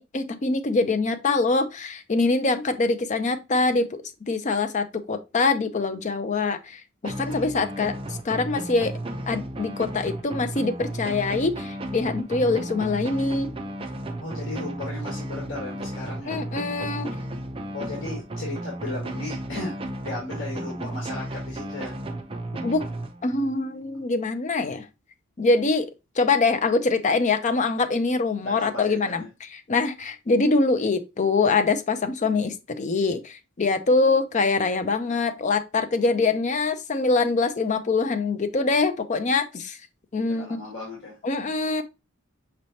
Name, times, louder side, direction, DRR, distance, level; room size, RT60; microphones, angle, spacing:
voice 1, 0.0-4.0 4.3-8.9 9.3-13.5 16.3-17.1 22.6-22.8 23.2-24.9 25.4-25.9 26.2-29.2 29.5-39.8 40.1-40.6 41.2-41.8, left 3 dB, 35° left, 0.5 m, -24 dB
sound 1, 7.0-23.6, right 1 dB, 25° right, 0.5 m, -34 dB
voice 2, 14.2-16.5 17.7-22.0 28.4-29.3 40.2-41.2, left 2 dB, 65° left, 1.6 m, -36 dB
5.3 x 3.1 x 2.7 m
head